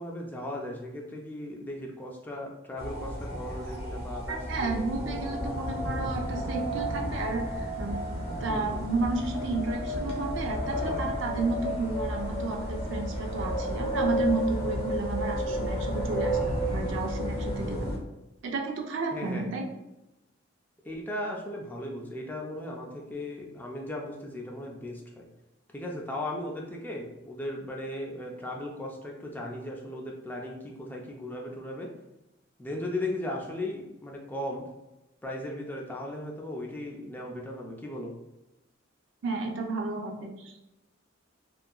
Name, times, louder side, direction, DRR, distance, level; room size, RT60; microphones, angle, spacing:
voice 1, 0.0-5.2 8.4-8.8 15.4-15.9 17.6-18.0 19.1-19.5 20.8-25.2 25.7-31.9 32.6-34.7 35.2-38.1, left 1 dB, 10° left, -1 dB, 0.3 m, -37 dB
sound 1, 2.8-18.0, equal, 30° left, 0.7 m, -32 dB
voice 2, 4.3-17.9 18.4-19.6 39.2-40.5, right 3 dB, 65° right, 2 dB, 0.4 m, -32 dB
2.7 x 2.4 x 2.3 m, 0.94 s
head